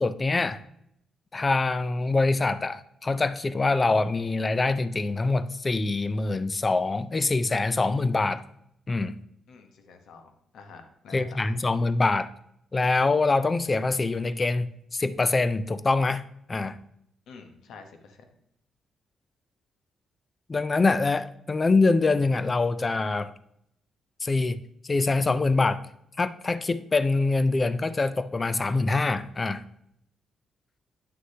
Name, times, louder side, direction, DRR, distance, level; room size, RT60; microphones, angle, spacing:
voice 1, 0.0-0.6 1.3-8.4 8.9-9.2 11.1-12.3 12.7-16.2 16.5-16.8 20.5-23.3 24.2-24.6 24.8-25.8 26.2-29.6, left 3 dB, 20° left, 14 dB, 0.4 m, -24 dB
voice 2, 9.5-11.5 17.3-18.2, left 4 dB, 75° left, 5 dB, 1.0 m, -48 dB
9.5 x 6.4 x 2.8 m, 0.74 s
cardioid pair, 150°, 0 cm